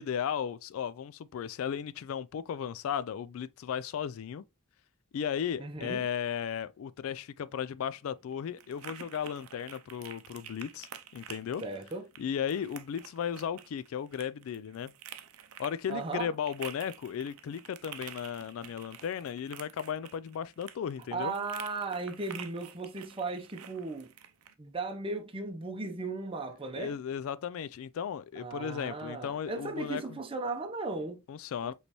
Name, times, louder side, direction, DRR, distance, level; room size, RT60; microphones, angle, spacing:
voice 1, 0.0-4.4 5.1-10.9 11.1-11.6 12.2-14.9 15.6-21.3 26.7-30.2 31.3-31.7, left 8 dB, 70° left, 0.3 m, -35 dB
voice 2, 5.6-6.0 11.6-12.0 15.9-16.3 21.1-24.1 24.6-26.9 28.4-31.2 31.6-31.7, right 3 dB, 25° right, 0.7 m, -36 dB
sound 1, 7.4-24.5, right 9 dB, 85° right, 0.6 m, -49 dB
5.1 x 3.2 x 2.9 m
head